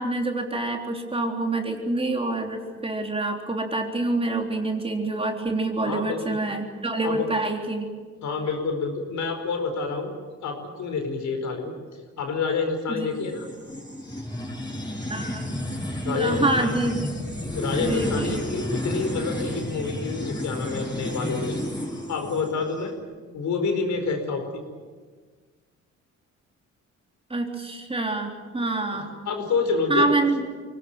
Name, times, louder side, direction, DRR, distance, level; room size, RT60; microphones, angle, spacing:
voice 1, 0.0-7.9 12.9-13.1 15.1-15.6 16.0-17.1 17.8-18.4 27.3-29.1 29.9-30.4, right 2 dB, 20° right, 2 dB, 3.6 m, -26 dB
voice 2, 5.8-6.4 7.0-7.2 8.2-10.1 10.4-11.7 12.2-13.5 16.0-16.7 17.4-21.6 22.1-22.9 23.3-24.6 28.9-30.3, left 4 dB, 70° left, 5 dB, 4.9 m, -28 dB
sound 1, 13.1-22.8, left 1 dB, 15° left, 7.2 m, -31 dB
24.0 x 18.0 x 9.2 m, 1.5 s
cardioid pair, 90°, 30 cm